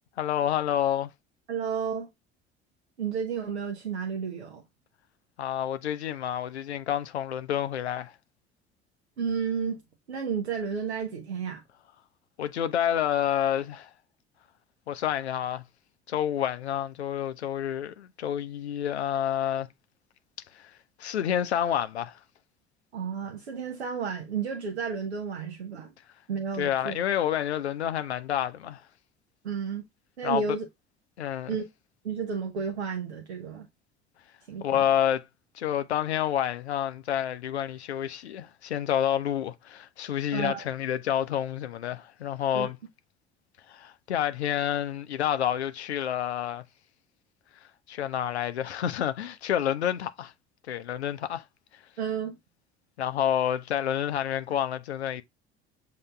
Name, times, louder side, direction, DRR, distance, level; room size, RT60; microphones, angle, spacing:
voice 1, 0.2-1.1 5.4-8.1 12.4-13.9 14.9-15.6 16.1-19.7 20.5-20.7 21.0-22.2 26.6-28.8 30.2-30.4 31.2-31.6 34.6-35.2 35.5-42.8 43.7-46.6 47.9-50.3 50.7-51.4 53.0-55.2, left 10 dB, 80° left, 0.6 m, -29 dB
voice 2, 1.5-2.1 3.0-4.6 9.2-9.8 10.1-11.6 22.9-25.9 26.3-27.0 29.4-29.8 30.2-30.6 31.5-31.6 32.0-33.7 34.5-34.8 40.3-40.6 42.5-42.7 52.0-52.4, right 6 dB, 80° right, 0.7 m, -32 dB
7.5 x 2.8 x 2.2 m
figure-of-eight pair, 60°, 32 cm